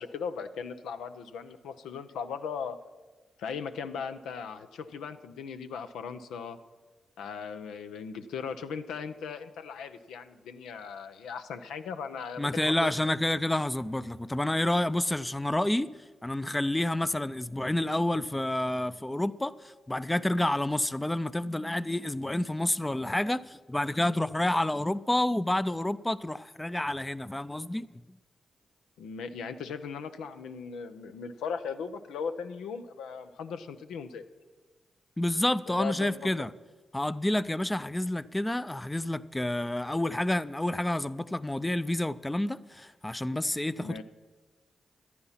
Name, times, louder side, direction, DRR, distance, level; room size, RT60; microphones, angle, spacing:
voice 1, 0.0-2.8 3.4-6.6 7.2-13.1 29.0-34.2 35.7-36.5 43.8-44.0, left 6 dB, 85° left, 9 dB, 0.7 m, -38 dB
voice 2, 12.4-15.9 16.2-27.9 35.2-36.5 36.9-44.0, left 1 dB, 15° left, 16 dB, 0.5 m, -29 dB
14.0 x 11.0 x 5.7 m, 1.3 s
supercardioid pair, 45°, 0 cm